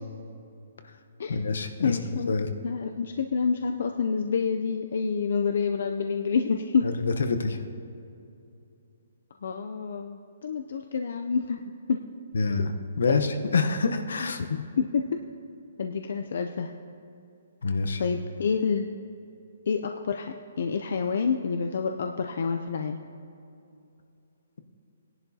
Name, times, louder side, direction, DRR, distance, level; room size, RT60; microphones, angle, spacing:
voice 1, 1.3-2.0 2.3-2.5 6.8-7.6 12.3-12.7 13.0-14.4 17.6-18.0, left 4 dB, 75° left, 7 dB, 0.8 m, -26 dB
voice 2, 1.8-2.4 2.6-6.9 9.4-11.6 11.9-12.0 13.1-13.3 14.2-15.2 15.8-16.7 18.0-18.9 19.7-23.0, left 5 dB, 50° left, 5 dB, 0.4 m, -28 dB
18.5 x 11.0 x 2.8 m, 2.7 s
hypercardioid pair, 180°, 0 cm